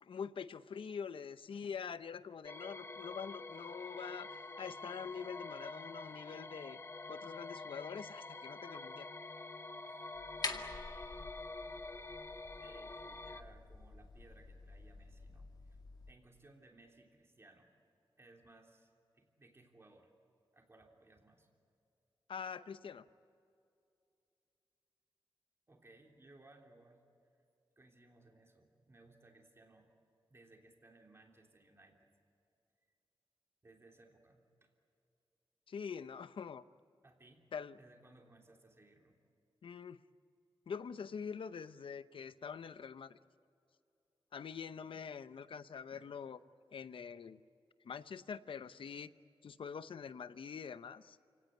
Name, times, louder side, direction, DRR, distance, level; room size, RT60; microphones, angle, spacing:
voice 1, 0.0-6.8 7.1-9.1 22.3-23.1 35.7-36.6 37.5-37.8 39.6-40.0 40.7-43.2 44.3-46.4 46.7-47.4 47.8-49.1 49.4-51.2, left 6 dB, 80° left, 13 dB, 0.8 m, -45 dB
sound 1, 2.4-13.4, left 3 dB, 30° left, 0.9 m, -47 dB
sound 2, 10.1-16.1, left 3 dB, 50° left, 2.1 m, -47 dB
voice 2, 12.6-15.8 16.1-17.7 18.2-20.1 20.5-21.5 25.7-27.0 27.8-29.9 30.3-32.1 33.6-34.7 37.0-37.5 37.8-39.2 45.9-46.2, right 2 dB, 30° right, 1 dB, 3.4 m, -62 dB
29.5 x 18.0 x 9.3 m, 2.6 s
wide cardioid pair, 135°, 9 cm